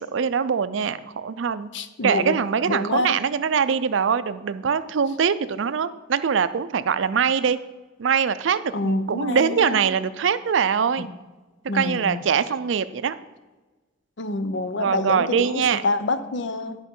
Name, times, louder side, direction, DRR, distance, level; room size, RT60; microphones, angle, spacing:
voice 1, 0.0-1.7 2.0-7.6 8.0-11.1 11.7-13.1 14.7-15.8, right 6 dB, 70° right, 14 dB, 0.4 m, -23 dB
voice 2, 1.7-2.4 2.7-3.2 8.7-9.9 11.0-11.1 11.7-12.2 14.2-16.8, left 2 dB, 65° left, 11 dB, 0.7 m, -27 dB
11.0 x 5.2 x 5.4 m, 1.2 s
head